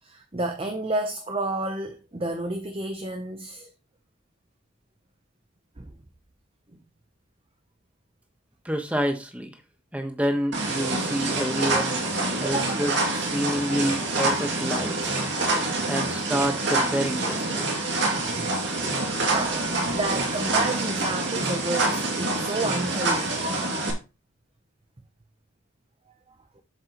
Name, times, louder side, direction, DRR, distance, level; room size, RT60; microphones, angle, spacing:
voice 1, 0.0-3.7 5.8-5.9 12.4-12.9 18.3-18.5 19.3-23.4 26.6-26.7, right 2 dB, 25° right, 0.7 m, -30 dB
voice 2, 8.6-9.5 9.9-12.1 12.4-12.9 13.2-15.2 15.9-17.7, equal, 5° right, 1.2 m, -28 dB
sound 1, 10.5-23.9, right 2 dB, 55° right, 2.5 m, -26 dB
7.9 x 7.6 x 3.0 m
head